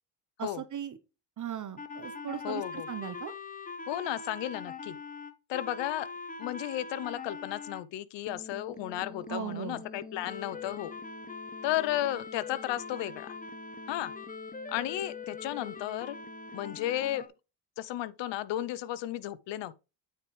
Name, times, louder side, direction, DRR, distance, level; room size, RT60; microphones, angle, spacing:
voice 1, 0.4-1.0 1.4-3.3 9.3-9.8, right 9 dB, 40° right, 1.0 m, -38 dB
sound 1, 1.8-7.8 8.3-17.3, left 4 dB, 20° left, 1.0 m, -42 dB
voice 2, 2.4-2.9 3.9-5.0 5.5-6.1 6.4-10.9 11.6-13.3 13.9-14.1 14.7-16.2 16.5-17.3 17.8-19.7, left 13 dB, 70° left, 0.8 m, -34 dB
9.0 x 4.6 x 3.2 m
supercardioid pair, 80°, 45 cm